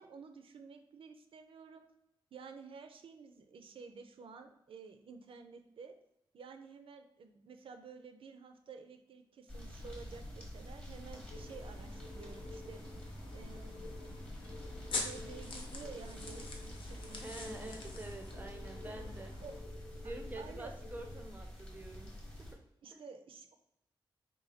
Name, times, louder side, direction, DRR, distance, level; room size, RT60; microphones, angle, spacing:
voice 1, 0.0-1.9 2.3-5.9 6.3-12.8 13.3-13.9 14.9-17.7 18.8-19.0 19.4-19.6 20.0-20.7 22.8-23.5, right 5 dB, 80° right, 6 dB, 0.5 m, -52 dB
sound 1, 9.5-22.5, equal, 10° left, 0.9 m, -47 dB
sound 2, 11.3-21.3, left 3 dB, 40° left, 0.4 m, -54 dB
sound 3, 11.4-19.6, left 3 dB, 70° left, 0.7 m, -46 dB
voice 2, 17.1-19.3 20.0-22.1 22.9-23.0, right 2 dB, 20° right, 4 dB, 0.5 m, -47 dB
3.9 x 2.3 x 4.1 m, 0.85 s
wide cardioid pair, 170°, 9 cm